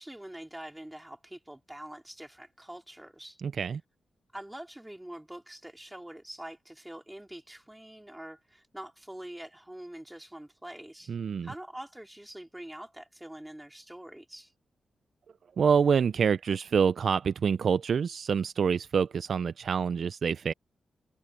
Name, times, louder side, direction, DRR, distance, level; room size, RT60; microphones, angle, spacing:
voice 1, 0.0-3.4 4.3-11.1 11.4-14.5, right 1 dB, 5° right, 3.2 m, -45 dB
voice 2, 3.4-3.8 11.1-11.5 15.6-20.5, right 6 dB, 50° right, 0.3 m, -26 dB
wide cardioid pair, 160°, 0 cm